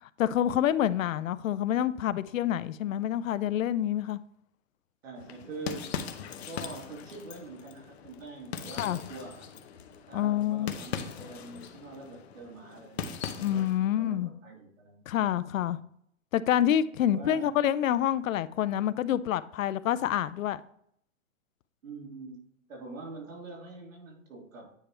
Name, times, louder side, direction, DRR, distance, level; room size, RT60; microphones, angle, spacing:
voice 1, 0.2-4.2 8.8-9.0 10.1-10.7 13.4-14.3 15.1-15.8 16.3-20.6, left 11 dB, 85° left, 0.5 m, -27 dB
voice 2, 5.0-6.1 6.4-9.5 10.1-15.1 15.5-15.9 17.1-17.5 21.8-22.4 22.7-24.8, right 3 dB, 80° right, 3.1 m, -45 dB
sound 1, 5.2-13.8, left 7 dB, 55° left, 0.8 m, -40 dB
9.2 x 3.4 x 4.3 m
hypercardioid pair, 160°, 39 cm